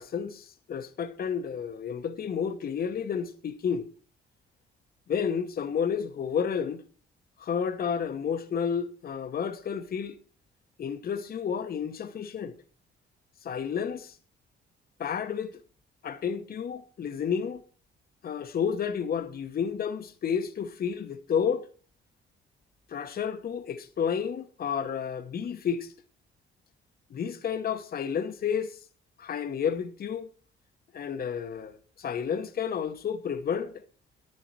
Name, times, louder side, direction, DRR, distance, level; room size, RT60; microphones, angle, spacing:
voice 1, 0.0-3.9 5.1-6.8 7.4-10.2 10.8-12.5 13.4-14.2 15.0-15.6 16.0-17.6 18.2-21.7 22.9-25.9 27.1-28.8 29.2-30.3 30.9-33.8, left 7 dB, 50° left, 1.0 m, -31 dB
11.0 x 9.9 x 4.6 m
cardioid pair, 90°, 20 cm